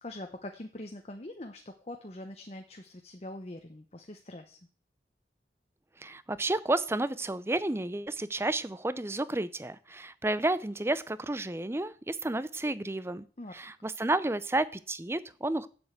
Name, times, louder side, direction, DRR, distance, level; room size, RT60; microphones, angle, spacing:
voice 1, 0.0-4.6 13.4-13.5, left 1 dB, 35° left, 5 dB, 0.9 m, -43 dB
voice 2, 6.0-13.2 13.5-15.7, right 2 dB, 15° right, 16 dB, 0.5 m, -31 dB
8.0 x 7.8 x 7.9 m, 0.41 s
head